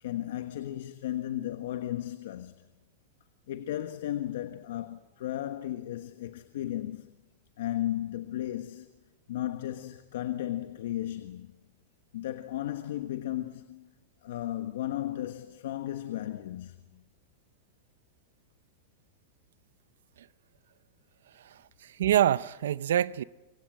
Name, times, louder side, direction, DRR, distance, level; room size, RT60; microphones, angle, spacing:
voice 1, 0.0-2.5 3.5-7.1 7.6-8.9 9.3-11.5 12.1-13.9 14.2-17.0, left 13 dB, 65° left, 1.3 m, -35 dB
voice 2, 21.4-23.2, right 11 dB, 85° right, 0.8 m, -26 dB
26.0 x 24.0 x 7.6 m
supercardioid pair, 175°, 0 cm